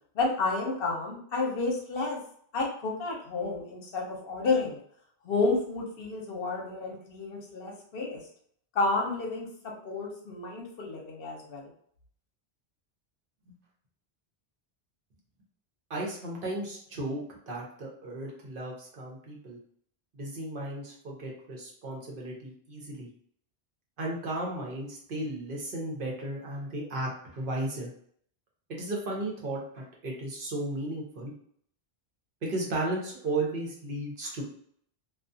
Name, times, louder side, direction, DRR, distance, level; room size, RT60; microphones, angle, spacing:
voice 1, 0.1-2.2 2.5-4.8 5.2-8.2 8.7-9.5 9.8-11.7, left 3 dB, 65° left, -1 dB, 0.9 m, -30 dB
voice 2, 15.9-17.2 17.5-19.6 20.1-23.1 24.0-27.9 28.7-31.3 32.4-34.4, right 1 dB, 60° right, -2 dB, 0.9 m, -34 dB
2.3 x 2.3 x 2.6 m, 0.63 s
omnidirectional pair, 1.1 m